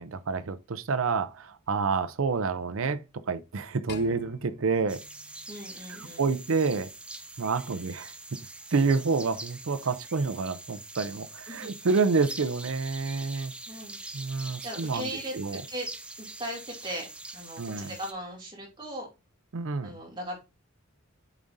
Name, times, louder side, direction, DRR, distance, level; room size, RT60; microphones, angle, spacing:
voice 1, 0.0-5.0 6.2-6.9 7.4-8.1 8.7-13.5 14.1-15.6 17.6-17.9 19.5-20.0, right 4 dB, 75° right, 0.6 m, -28 dB
sound 1, 3.9-6.3, left 5 dB, 50° left, 0.7 m, -48 dB
sound 2, 4.9-18.1, right 2 dB, 5° right, 0.5 m, -44 dB
voice 2, 5.5-6.3 11.5-11.7 13.7-14.0 14.6-15.9 16.2-19.1 19.8-20.4, right 1 dB, 25° right, 2.5 m, -38 dB
7.1 x 5.0 x 2.6 m
head